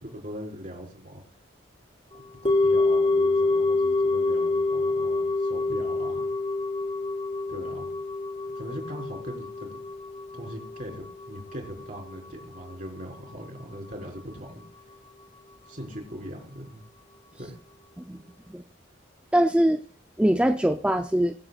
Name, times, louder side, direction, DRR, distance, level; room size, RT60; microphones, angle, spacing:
voice 1, 0.0-1.2 2.1-6.3 7.5-7.9 8.5-9.8 10.3-14.6 15.7-16.8 17.4-17.6, equal, 45° right, 0 dB, 4.1 m, -40 dB
sound 1, 2.5-12.7 13.0-13.1, left 3 dB, 30° left, 2.8 m, -27 dB
voice 2, 18.1-18.6 19.3-19.8 20.2-21.3, right 1 dB, 5° right, 6 dB, 0.5 m, -23 dB
23.5 x 8.0 x 2.4 m, 0.43 s
head